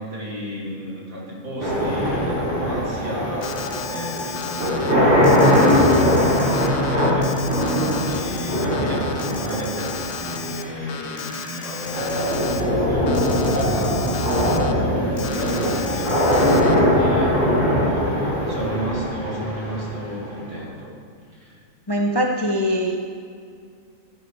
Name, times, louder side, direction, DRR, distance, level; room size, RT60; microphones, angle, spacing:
voice 1, 0.0-3.5 3.9-7.4 8.0-16.2 16.9-20.9 21.3-21.6, equal, 80° right, -4 dB, 2.7 m, -33 dB
sound 1, 1.6-20.6, left 1 dB, 55° right, 3.6 m, -21 dB
Alarm, 3.4-4.9 5.2-10.6 10.9-12.6 13.1-14.7 15.2-16.8, left 7 dB, 90° left, 1.1 m, -35 dB
voice 2, 21.9-23.0, equal, 30° left, 2 dB, 0.4 m, -22 dB
13.5 x 10.5 x 3.3 m, 2.3 s
omnidirectional pair, 1.5 m